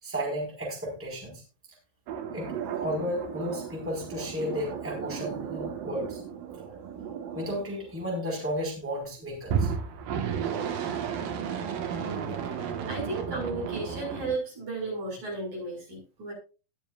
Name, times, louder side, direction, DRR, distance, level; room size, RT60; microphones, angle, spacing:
voice 1, 0.0-1.4 2.3-6.2 7.3-9.7, equal, 5° right, -2 dB, 4.8 m, -33 dB
sound 1, 2.1-8.4 9.4-14.4, right 7 dB, 75° right, 3.2 m, -34 dB
voice 2, 12.0-16.3, right 2 dB, 55° right, -2 dB, 7.3 m, -35 dB
20.0 x 7.4 x 2.5 m, 0.32 s
omnidirectional pair, 4.1 m